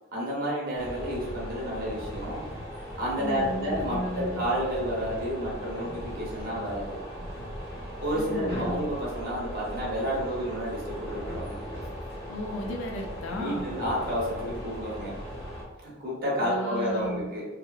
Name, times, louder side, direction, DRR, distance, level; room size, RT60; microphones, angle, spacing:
voice 1, 0.1-2.5 3.0-7.0 8.0-11.6 13.3-15.2 15.7-17.5, equal, 50° right, -5 dB, 0.9 m, -30 dB
sound 1, 0.7-15.6, equal, 25° left, 0.8 m, -38 dB
voice 2, 3.2-4.4 8.2-8.8 12.3-13.7 16.4-17.2, left 1 dB, 75° left, 1 dB, 0.4 m, -34 dB
2.8 x 2.0 x 2.3 m, 1.3 s
head